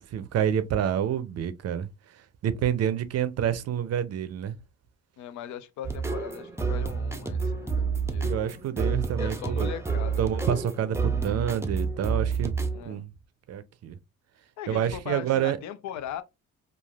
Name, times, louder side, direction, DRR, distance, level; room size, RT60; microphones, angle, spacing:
voice 1, 0.1-1.9 2.1-4.6 8.2-9.7 10.2-12.5 12.8-13.1 13.5-14.0 14.7-15.6, right 9 dB, 55° right, 0.5 m, -28 dB
voice 2, 5.2-8.4 9.2-10.5 12.7-13.0 14.6-16.2, left 9 dB, 70° left, 0.5 m, -39 dB
sound 1, 5.8-12.8, right 5 dB, 10° right, 0.5 m, -29 dB
3.3 x 2.4 x 2.3 m
cardioid pair, 90°, 30 cm